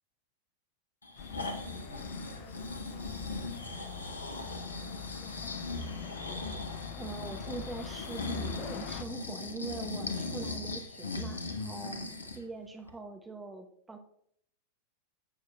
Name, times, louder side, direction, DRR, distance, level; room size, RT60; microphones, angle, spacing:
Breathing, 1.0-12.4 12.9-13.0, left 3 dB, 75° left, 1.1 m, -39 dB
sound 1, 1.2-9.0, left 9 dB, 45° left, 0.6 m, -45 dB
voice 1, 1.4-5.9, right 3 dB, 75° right, 3 dB, 2.0 m, -55 dB
voice 2, 7.0-12.0 12.3-14.0, right 3 dB, 10° right, 4 dB, 1.0 m, -43 dB
15.5 x 6.6 x 2.3 m, 0.69 s
figure-of-eight pair, 90°, 0 cm